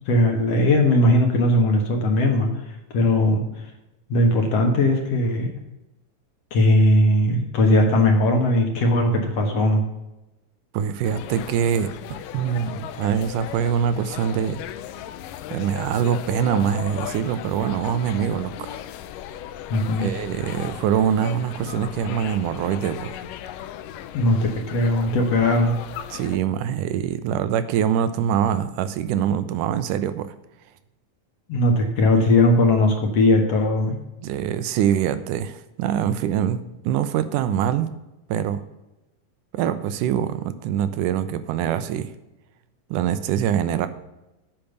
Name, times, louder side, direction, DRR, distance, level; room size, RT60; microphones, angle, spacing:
voice 1, 0.1-3.4 4.1-5.6 6.5-9.8 19.7-20.1 24.1-25.7 31.5-34.0, left 1 dB, 55° left, 3 dB, 2.0 m, -19 dB
voice 2, 10.7-11.9 12.3-14.6 15.5-18.8 20.0-23.2 26.1-30.3 34.2-37.9 38.3-38.6 39.5-42.1 42.9-43.9, right 9 dB, 80° right, 12 dB, 2.0 m, -24 dB
sound 1, 11.0-26.4, left 11 dB, 80° left, 2.1 m, -36 dB
8.7 x 5.9 x 6.6 m, 0.97 s
omnidirectional pair, 4.0 m